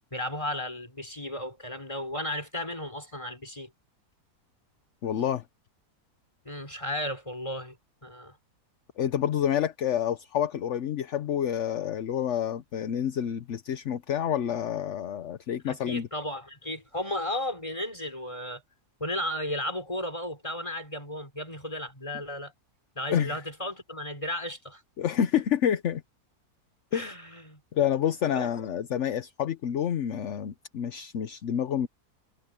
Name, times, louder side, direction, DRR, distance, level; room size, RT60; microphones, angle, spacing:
voice 1, 0.1-3.7 6.5-7.8 8.0-8.4 15.7-18.6 19.0-22.5 23.0-24.8 26.9-27.6 28.3-28.5, left 1 dB, 20° left, 5.2 m, -34 dB
voice 2, 5.0-5.4 9.0-16.1 23.1-23.3 25.0-26.0 26.9-27.1 27.7-31.9, left 9 dB, 55° left, 1.0 m, -28 dB
omnidirectional pair, 1.7 m